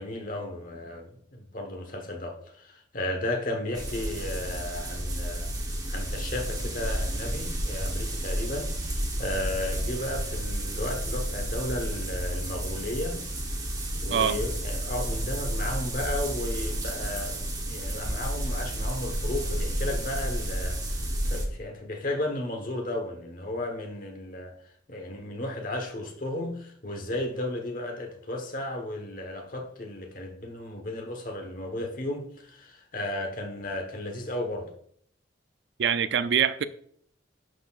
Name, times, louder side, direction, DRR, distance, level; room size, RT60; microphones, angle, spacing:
voice 1, 0.0-5.5 5.9-13.2 14.0-24.5 24.9-34.7, left 1 dB, 45° left, 1.1 m, -34 dB
sound 1, 3.7-21.5, right 1 dB, 20° right, 1.0 m, -31 dB
voice 2, 35.8-36.6, right 8 dB, 65° right, 0.4 m, -24 dB
11.0 x 4.2 x 2.4 m
head